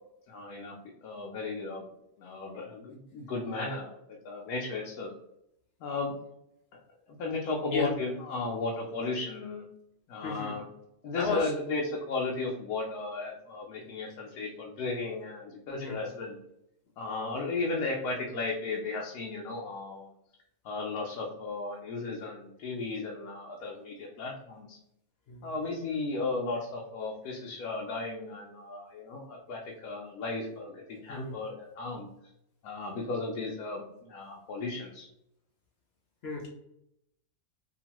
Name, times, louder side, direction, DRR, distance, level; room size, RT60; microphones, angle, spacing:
voice 1, 0.3-0.7 1.0-1.8 2.2-4.0 4.2-5.1 5.8-6.1 7.2-9.6 10.1-10.7 11.0-16.3 17.0-20.1 20.6-24.8 25.4-32.1 32.6-35.1, left 3 dB, 85° left, -1 dB, 1.1 m, -35 dB
voice 2, 10.2-10.6 11.2-11.5 15.7-16.0 25.3-25.5 31.1-31.3 36.2-36.5, left 3 dB, 65° left, 0 dB, 0.6 m, -34 dB
2.9 x 2.4 x 2.8 m, 0.78 s
omnidirectional pair, 1.6 m